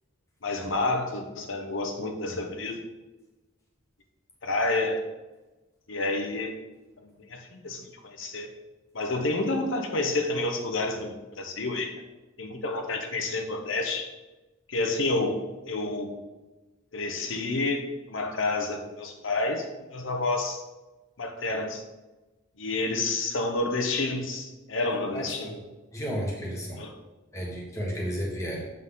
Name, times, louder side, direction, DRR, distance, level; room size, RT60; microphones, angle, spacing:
voice 1, 0.4-2.8 4.4-5.0 5.9-6.6 7.0-8.5 8.9-11.9 12.4-14.1 14.7-16.2 16.9-20.6 21.2-21.8 22.6-25.6 26.8-26.9, left 2 dB, 70° left, 5 dB, 0.9 m, -29 dB
voice 2, 25.1-25.5 25.9-26.8 27.3-28.7, equal, 15° left, -3 dB, 1.4 m, -33 dB
7.5 x 3.9 x 3.8 m, 1.1 s
head